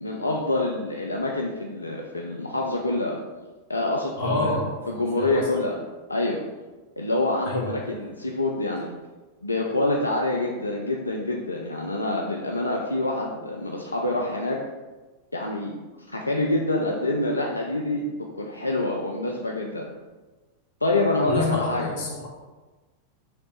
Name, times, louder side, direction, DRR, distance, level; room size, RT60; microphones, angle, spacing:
voice 1, 0.0-3.2 3.7-4.6 4.9-5.7 6.1-6.4 7.0-8.9 9.4-14.6 15.3-15.7 16.1-19.9 20.8-21.9, left 2 dB, 80° left, 0 dB, 0.3 m, -26 dB
voice 2, 4.2-5.5 7.4-7.9 21.2-22.3, left 2 dB, 45° left, -4 dB, 1.1 m, -28 dB
3.1 x 3.0 x 3.1 m, 1.2 s
figure-of-eight pair, 90°, 0 cm